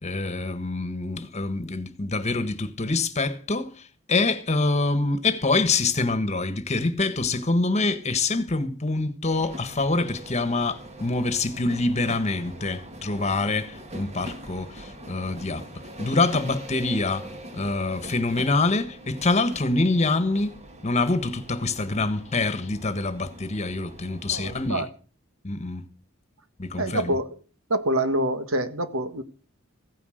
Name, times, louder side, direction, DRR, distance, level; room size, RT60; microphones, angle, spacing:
voice 1, 0.0-15.7 16.0-17.3 17.5-20.5 20.8-24.9 25.4-25.9 26.6-27.2, left 3 dB, 35° left, 1.4 m, -25 dB
sound 1, 9.3-24.7, right 1 dB, 30° right, 1.8 m, -43 dB
voice 2, 24.3-24.9 26.8-27.3 27.7-29.2, right 1 dB, 85° right, 1.7 m, -26 dB
16.0 x 9.6 x 6.5 m
head